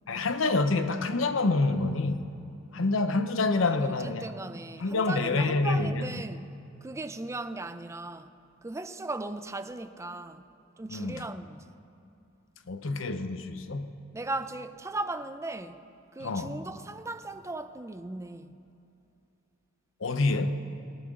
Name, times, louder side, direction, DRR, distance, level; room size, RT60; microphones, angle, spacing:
voice 1, 0.1-2.3 2.7-4.2 4.8-6.1 10.9-11.3 12.7-14.0 16.2-16.6 20.0-20.6, left 3 dB, 75° left, 0.9 m, -27 dB
voice 2, 3.7-6.5 6.8-8.3 8.6-10.4 10.8-11.7 14.1-15.8 16.1-18.5, right 2 dB, 15° right, 0.5 m, -37 dB
19.5 x 19.5 x 3.8 m
head